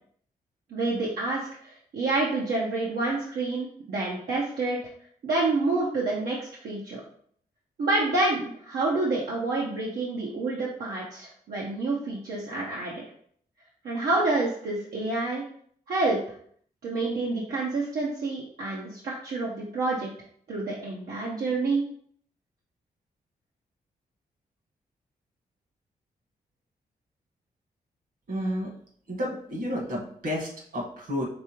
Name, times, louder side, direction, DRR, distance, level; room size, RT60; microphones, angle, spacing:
voice 1, 0.7-4.8 5.2-7.0 7.8-12.9 13.8-15.4 15.9-16.2 16.8-20.1 20.5-21.8, right 2 dB, 85° right, -4 dB, 0.8 m, -28 dB
voice 2, 28.3-28.7 29.1-31.2, equal, 65° right, -2 dB, 1.6 m, -31 dB
5.3 x 3.4 x 3.0 m, 0.62 s
cardioid pair, 70°, 16 cm